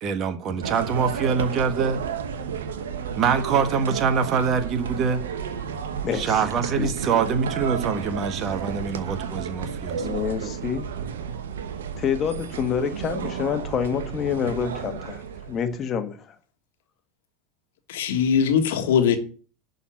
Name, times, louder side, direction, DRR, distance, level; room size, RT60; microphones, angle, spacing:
voice 1, 0.0-2.0 3.2-5.2 6.1-10.1, right 6 dB, 40° right, 1.4 m, -24 dB
sound 1, 0.6-15.8, right 7 dB, 75° right, 1.0 m, -32 dB
voice 2, 6.0-6.4 6.8-6.9 10.0-10.9 12.0-15.2 15.5-16.3, left 8 dB, 35° left, 1.5 m, -27 dB
voice 3, 17.9-19.2, left 7 dB, 70° left, 1.6 m, -21 dB
11.5 x 4.1 x 7.5 m
figure-of-eight pair, 80°, 0 cm